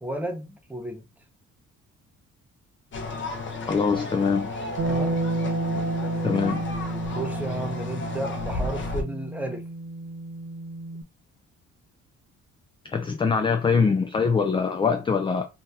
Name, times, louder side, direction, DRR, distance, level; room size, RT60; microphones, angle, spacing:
voice 1, 0.0-1.0 4.9-5.2 7.1-9.6, right 1 dB, 5° right, 0.7 m, -33 dB
sound 1, 2.9-9.0, left 2 dB, 40° left, 0.7 m, -33 dB
voice 2, 3.7-4.5 6.2-6.6 12.8-15.4, left 5 dB, 15° left, 0.3 m, -23 dB
Bass guitar, 4.8-11.0, right 2 dB, 40° right, 0.8 m, -31 dB
2.8 x 2.2 x 3.3 m
cardioid pair, 90°, 30 cm